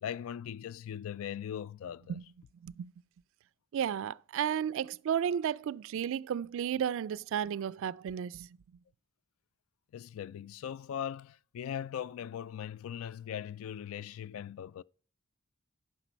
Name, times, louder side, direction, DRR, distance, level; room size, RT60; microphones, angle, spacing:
voice 1, 0.0-2.2 9.9-14.8, left 9 dB, 75° left, 0.3 m, -40 dB
voice 2, 3.7-8.5, right 8 dB, 65° right, 0.3 m, -33 dB
10.0 x 5.9 x 4.4 m
head